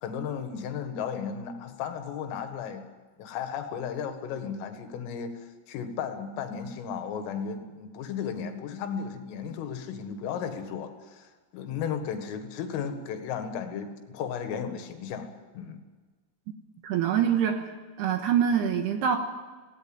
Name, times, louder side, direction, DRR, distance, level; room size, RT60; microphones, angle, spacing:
voice 1, 0.0-2.9 3.2-5.3 5.7-15.3 15.5-15.8, left 7 dB, 85° left, 7 dB, 4.3 m, -34 dB
voice 2, 16.8-17.7 18.0-19.2, right 8 dB, 70° right, 5 dB, 2.9 m, -24 dB
18.0 x 17.5 x 9.0 m, 1.3 s
omnidirectional pair, 5.8 m